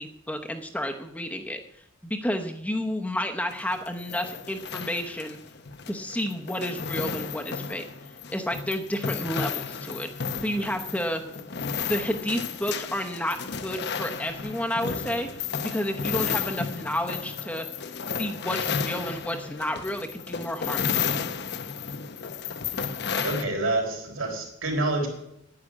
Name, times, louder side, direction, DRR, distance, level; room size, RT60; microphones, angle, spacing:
voice 1, 0.0-1.6 2.0-5.4 5.9-7.8 8.3-10.1 10.4-11.2 11.8-13.4 13.6-15.3 15.6-17.7 18.2-21.2, left 1 dB, 5° left, 4 dB, 0.9 m, -31 dB
sound 1, 3.5-23.4, left 6 dB, 55° left, 0.8 m, -33 dB
voice 2, 23.2-25.1, right 2 dB, 80° right, 1 dB, 4.0 m, -27 dB
9.9 x 9.9 x 8.3 m, 0.81 s
head